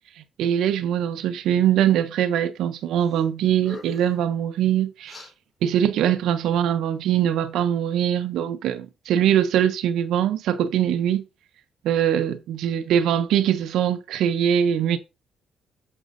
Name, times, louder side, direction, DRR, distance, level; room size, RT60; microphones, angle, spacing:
voice 1, 0.4-5.2 5.6-11.2 11.8-15.0, right 10 dB, 80° right, 0.6 m, -22 dB
sound 1, 3.0-3.3 3.6-4.2 5.0-5.3, left 3 dB, 30° left, 4.0 m, -41 dB
8.6 x 7.3 x 2.6 m
cardioid pair, 90°, 0 cm